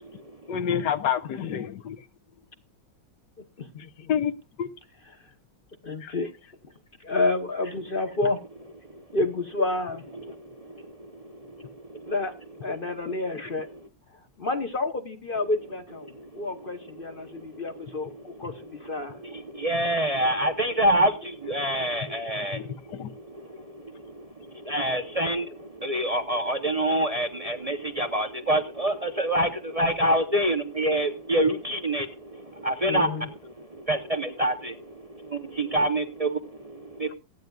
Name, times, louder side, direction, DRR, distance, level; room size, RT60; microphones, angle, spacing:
voice 1, 0.5-2.0 4.1-4.3 4.6-4.7 6.0-6.1 13.1-13.2 22.5-22.7 23.0-23.1, left 8 dB, 65° left, 1.3 m, -28 dB
voice 2, 5.8-6.3 7.0-8.4 9.1-10.0 12.1-12.3 12.6-13.7 14.4-19.2 32.9-33.3 35.8-35.9, left 2 dB, 40° left, 0.9 m, -29 dB
voice 3, 10.3-12.1 16.1-16.5 17.3-17.6 18.3-18.4 19.1-37.1, right 1 dB, 55° right, 0.4 m, -27 dB
27.5 x 9.3 x 2.3 m
omnidirectional pair, 2.1 m